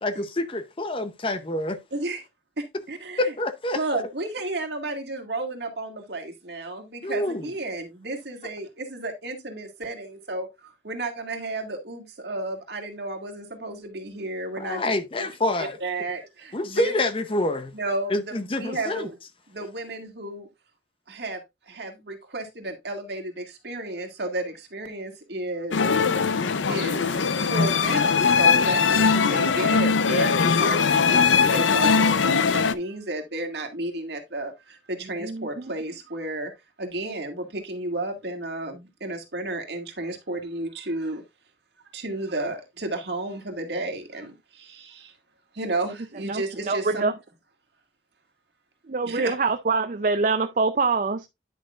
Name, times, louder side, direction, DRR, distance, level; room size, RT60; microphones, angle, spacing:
voice 1, 0.0-1.8 3.2-3.8 7.0-7.4 14.6-15.8 16.5-17.7 18.1-19.1, left 1 dB, 30° left, 0.7 m, -27 dB
voice 2, 1.9-2.2 2.6-3.3 3.7-14.9 15.2-15.3 15.6-16.9 17.7-19.2 19.5-20.5 21.1-26.1 26.7-36.5 36.8-41.2 41.9-45.1 45.5-47.1 49.1-49.3, right 2 dB, 60° right, 1.9 m, -33 dB
sound 1, 25.7-32.7, left 5 dB, 85° left, 0.6 m, -20 dB
voice 3, 35.2-35.7 46.3-47.1 48.9-51.3, right 4 dB, 45° right, 0.5 m, -25 dB
10.0 x 6.4 x 2.4 m
head